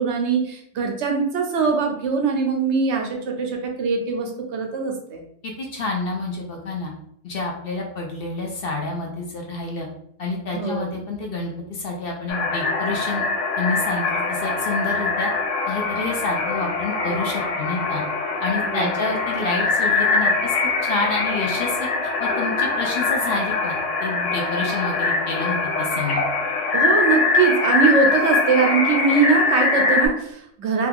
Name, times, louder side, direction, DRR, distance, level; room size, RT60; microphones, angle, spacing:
voice 1, 0.0-5.2 10.5-11.0 18.6-19.0 26.7-30.9, right 5 dB, 70° right, 3 dB, 0.9 m, -22 dB
voice 2, 5.4-6.9 7.2-9.9 10.2-13.2 13.6-15.3 15.7-18.0 18.4-21.9 22.2-26.2, left 3 dB, 55° left, 0 dB, 0.8 m, -28 dB
sound 1, 12.3-30.1, left 3 dB, 85° left, 1.0 m, -23 dB
2.9 x 2.3 x 3.5 m, 0.68 s
omnidirectional pair, 1.3 m